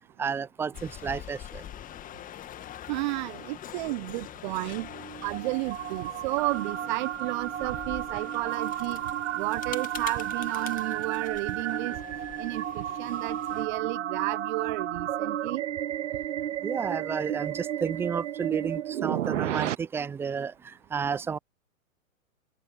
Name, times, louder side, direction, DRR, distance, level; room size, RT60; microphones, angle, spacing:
voice 1, 0.2-1.6 16.6-21.4, right 6 dB, 5° right, 0.5 m, -31 dB
sound 1, 0.7-13.7, left 11 dB, 20° left, 1.6 m, -44 dB
voice 2, 2.9-4.9 5.2-12.0 12.4-15.6, right 22 dB, 35° right, 0.8 m, -32 dB
Lost in another dimension, 4.7-19.7, right 11 dB, 60° right, 1.8 m, -33 dB
open air
hypercardioid pair, 120°, 41 cm